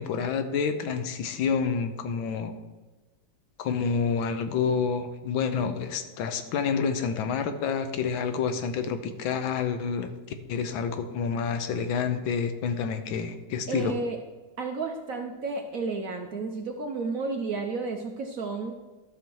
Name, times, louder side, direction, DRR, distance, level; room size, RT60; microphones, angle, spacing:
voice 1, 0.0-2.6 3.6-10.1 10.5-14.0, left 6 dB, 85° left, 9 dB, 1.6 m, -28 dB
voice 2, 13.7-14.2 14.6-18.7, right 4 dB, 60° right, 4 dB, 0.9 m, -32 dB
12.5 x 6.3 x 4.6 m, 1.3 s
omnidirectional pair, 2.1 m